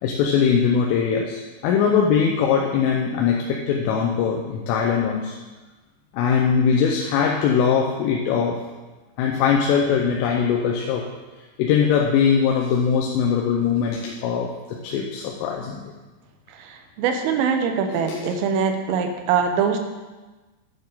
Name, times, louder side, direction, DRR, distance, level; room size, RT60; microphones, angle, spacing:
voice 1, 0.0-5.4 6.1-8.6 9.2-11.1 11.6-15.9 17.9-18.4, left 7 dB, 85° left, 0 dB, 3.4 m, -21 dB
voice 2, 16.6-19.8, right 6 dB, 90° right, 5 dB, 3.6 m, -23 dB
11.0 x 9.1 x 4.1 m, 1.2 s
omnidirectional pair, 5.7 m